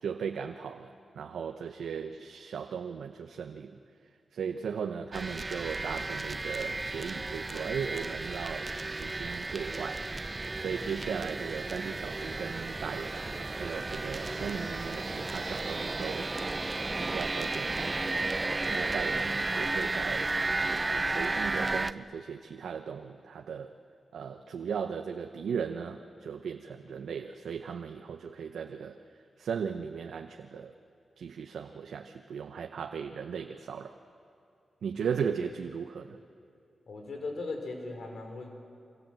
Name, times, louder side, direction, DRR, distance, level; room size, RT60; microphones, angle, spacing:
voice 1, 0.0-3.8 4.3-10.1 10.6-16.3 17.0-18.2 18.7-20.3 20.7-23.7 24.1-29.0 29.4-30.7 31.2-33.9 34.8-36.2, right 6 dB, 90° right, 5 dB, 0.9 m, -37 dB
sound 1, 5.1-21.9, right 2 dB, 30° right, 0.7 m, -33 dB
voice 2, 36.9-38.5, left 3 dB, 70° left, 3 dB, 4.8 m, -38 dB
28.5 x 25.0 x 7.7 m, 2.6 s
cardioid pair, 70°, 0 cm